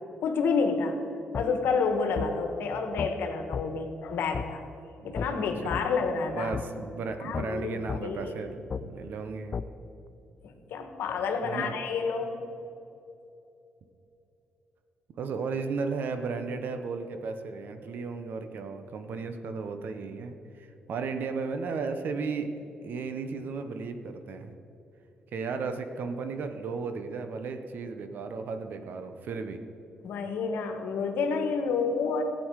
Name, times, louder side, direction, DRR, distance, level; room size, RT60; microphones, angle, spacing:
voice 1, 0.2-1.0 1.3-4.6 5.0-6.5 7.2-8.3 10.4-12.4 30.0-32.2, left 5 dB, 85° left, 5 dB, 1.4 m, -29 dB
sound 1, 1.3-1.5 2.2-2.3 3.0-3.1 3.5-3.7 4.3-4.5 5.2-5.3 5.7-5.9 6.5-6.7 7.3-7.5 7.9-8.0 8.7-8.8 9.5-9.7, left 6 dB, 40° left, 0.4 m, -32 dB
voice 2, 5.0-5.8 6.3-9.6 11.4-11.7 15.2-22.5 22.8-24.5 25.3-29.6, right 4 dB, 65° right, 8 dB, 1.0 m, -35 dB
15.5 x 8.8 x 4.8 m, 3.0 s
cardioid pair, 100°, 3 cm